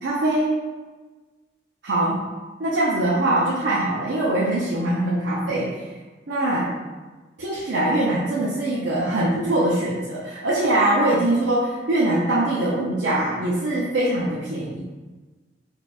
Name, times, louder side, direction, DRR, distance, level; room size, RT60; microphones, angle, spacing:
voice 1, 0.0-0.6 1.8-2.2 2.6-5.8 6.3-6.7 7.4-14.8, right 1 dB, 85° right, -6 dB, 0.6 m, -22 dB
4.2 x 2.3 x 2.4 m, 1.3 s
head